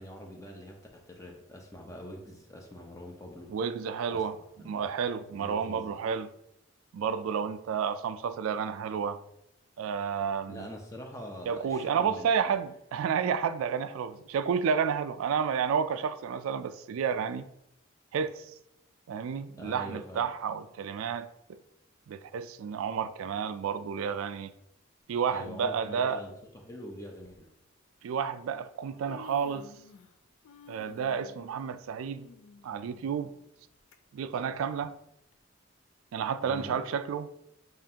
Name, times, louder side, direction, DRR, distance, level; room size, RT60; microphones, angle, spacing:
voice 1, 0.0-3.5 4.1-4.2 4.6-4.8 5.3-6.0 10.5-12.4 19.6-20.3 25.3-27.5 36.4-36.8, equal, 15° left, 0.6 m, -44 dB
voice 2, 3.5-4.4 4.6-6.3 6.9-9.2 9.8-10.7 11.5-17.4 18.1-18.5 19.1-21.3 22.1-24.5 25.1-26.2 28.0-29.7 30.7-32.3 32.6-33.3 34.1-34.9 36.1-37.3, right 7 dB, 90° right, 0.3 m, -31 dB
Human voice, 25.2-25.4 26.5-26.6 27.2-27.4 28.4-28.5 28.8-30.2 30.4-34.0 34.4-34.5 35.3-35.4, left 4 dB, 80° left, 0.3 m, -52 dB
7.3 x 2.5 x 2.8 m
head